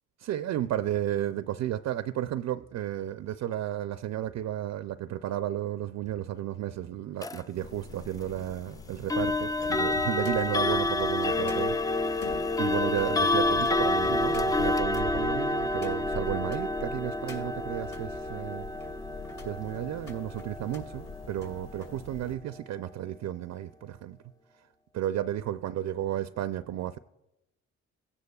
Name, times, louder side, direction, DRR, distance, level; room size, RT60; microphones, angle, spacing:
voice 1, 0.2-18.7 19.4-24.2 24.9-27.0, right 12 dB, 55° right, 0.5 m, -33 dB
sound 1, 6.0-16.6 17.0-18.1 18.6-22.0 22.3-22.6, left 2 dB, 45° left, 2.9 m, -53 dB
sound 2, 7.2-7.4 9.1-21.9, left 2 dB, 10° left, 0.3 m, -29 dB
sound 3, 7.6-22.4, left 3 dB, 75° left, 1.6 m, -44 dB
16.0 x 9.6 x 2.3 m
supercardioid pair, 65°, 33 cm